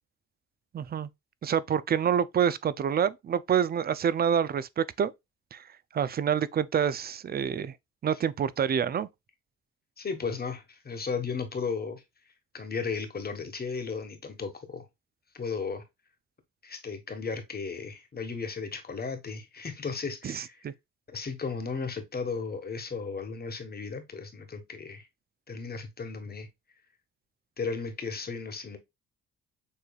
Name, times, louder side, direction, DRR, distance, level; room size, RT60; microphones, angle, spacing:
voice 1, 0.7-1.1 1.4-5.1 5.5-5.6 5.9-7.7 8.0-9.1 20.2-20.7, right 8 dB, 35° right, 0.4 m, -27 dB
voice 2, 10.0-12.0 12.5-14.8 15.3-15.8 16.6-20.7 21.1-25.1 25.5-26.5 27.6-28.8, left 5 dB, 30° left, 1.3 m, -35 dB
7.2 x 3.1 x 2.3 m
cardioid pair, 90°, 30 cm